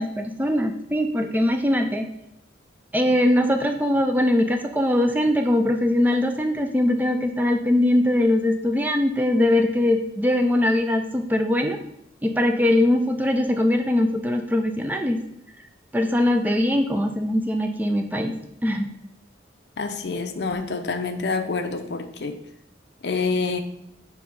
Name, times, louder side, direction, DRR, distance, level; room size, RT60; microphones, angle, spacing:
voice 1, 0.0-2.1 2.9-11.8 12.2-15.2 15.9-18.3 18.6-18.9, left 1 dB, 10° right, 4 dB, 0.4 m, -21 dB
voice 2, 19.8-22.4 23.0-23.6, left 4 dB, 65° left, 8 dB, 0.5 m, -27 dB
7.7 x 2.8 x 5.4 m, 0.80 s
head